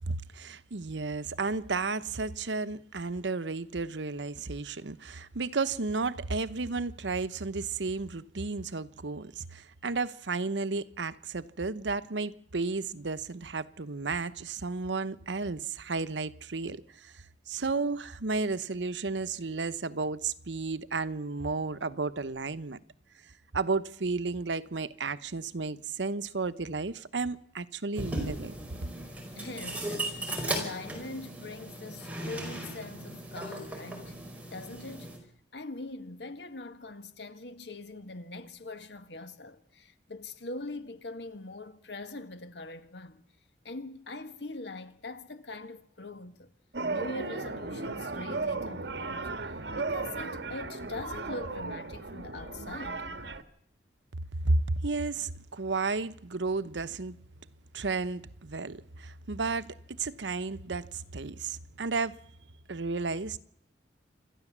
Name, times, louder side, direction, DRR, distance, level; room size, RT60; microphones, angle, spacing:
voice 1, 0.0-22.8 23.5-28.5 54.4-57.2 57.7-62.2 62.7-63.4, right 3 dB, 90° right, 0.9 m, -33 dB
sound 1, 28.0-35.2, right 1 dB, 10° right, 4.6 m, -37 dB
voice 2, 29.4-30.1 30.5-34.2 34.5-35.1 35.5-43.2 43.6-46.5 46.9-53.1, left 2 dB, 75° left, 1.7 m, -42 dB
sound 2, 46.7-53.4, right 3 dB, 75° right, 1.4 m, -35 dB
27.5 x 13.0 x 7.4 m
head